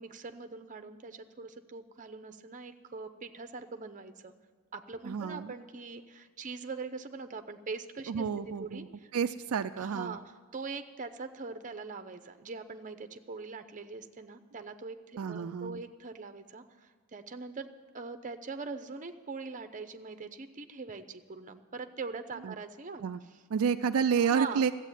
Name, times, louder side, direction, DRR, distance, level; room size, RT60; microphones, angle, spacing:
voice 1, 0.0-4.3 4.7-8.3 8.6-9.1 9.8-10.2 10.5-17.7 17.9-23.0 23.3-23.4 24.2-24.6, right 4 dB, 35° right, 8 dB, 0.8 m, -42 dB
voice 2, 5.0-5.5 8.1-8.9 9.1-10.2 15.2-15.8 22.4-22.5 23.0-23.2 23.5-24.7, right 6 dB, 75° right, 9 dB, 0.4 m, -30 dB
14.5 x 8.2 x 9.9 m, 1.4 s
head